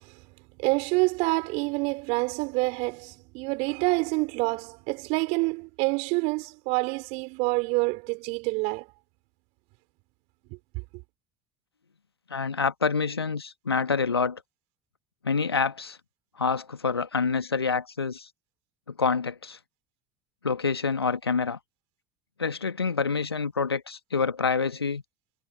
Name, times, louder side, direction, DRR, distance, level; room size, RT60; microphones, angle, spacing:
voice 1, 0.6-8.8, right 28 dB, 55° right, 4.2 m, -27 dB
voice 2, 12.3-14.4 15.2-16.0 16.4-18.3 19.0-19.6 20.4-21.6 22.4-25.0, left 5 dB, 85° left, 1.8 m, -27 dB
figure-of-eight pair, 65°, 13 cm